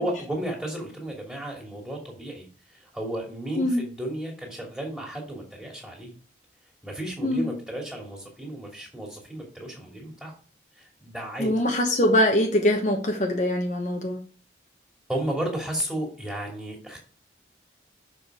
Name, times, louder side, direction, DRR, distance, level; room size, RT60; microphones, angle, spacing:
voice 1, 0.0-6.1 6.8-10.4 10.8-11.5 15.1-17.0, right 1 dB, 5° right, -1 dB, 2.7 m, -33 dB
voice 2, 3.6-3.9 7.2-7.6 11.4-14.2, left 1 dB, 40° left, 1 dB, 1.2 m, -23 dB
6.8 x 5.4 x 4.8 m, 0.38 s
head